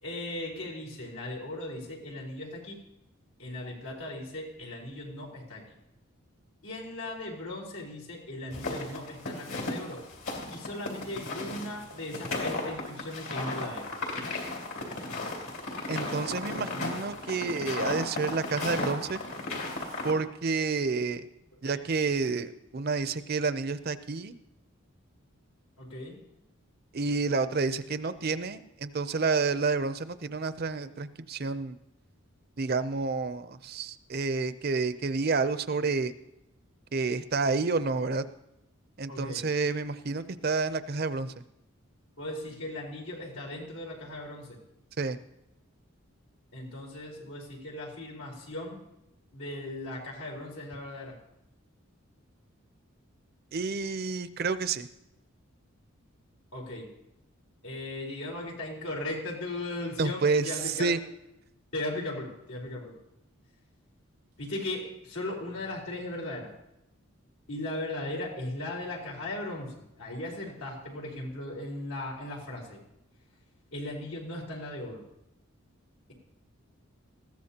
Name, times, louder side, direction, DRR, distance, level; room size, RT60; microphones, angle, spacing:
voice 1, 0.0-2.8 3.4-5.6 6.6-10.0 10.5-13.9 21.6-21.8 25.8-26.2 39.1-39.4 42.2-44.6 46.5-48.8 49.3-51.2 56.5-56.9 57.6-60.9 61.7-63.0 64.4-66.5 67.5-72.8 73.7-75.0, left 1 dB, 90° left, -2 dB, 4.2 m, -37 dB
sound 1, 8.5-20.1, left 2 dB, 70° left, 3.2 m, -35 dB
voice 2, 15.9-19.2 20.0-21.3 21.6-24.3 26.9-31.7 32.6-36.1 36.9-38.2 39.0-41.3 45.0-45.2 53.5-54.9 60.0-61.0, right 4 dB, 45° right, 12 dB, 0.6 m, -29 dB
20.0 x 15.0 x 2.9 m, 0.85 s
head